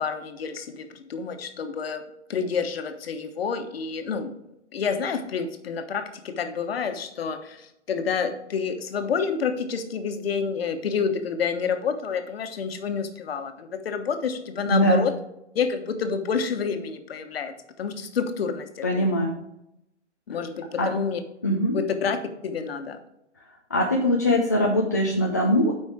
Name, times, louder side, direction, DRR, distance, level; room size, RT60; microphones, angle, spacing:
voice 1, 0.0-2.0 2.3-4.3 4.7-15.1 15.5-19.1 20.3-21.2 21.7-22.2 22.4-23.0, left 6 dB, 55° left, 8 dB, 1.3 m, -28 dB
voice 2, 14.7-15.0 18.8-19.4 20.8-20.9 21.4-21.8 23.7-25.7, equal, 15° left, -1 dB, 0.3 m, -22 dB
8.3 x 5.4 x 4.7 m, 0.84 s
figure-of-eight pair, 130°, 36 cm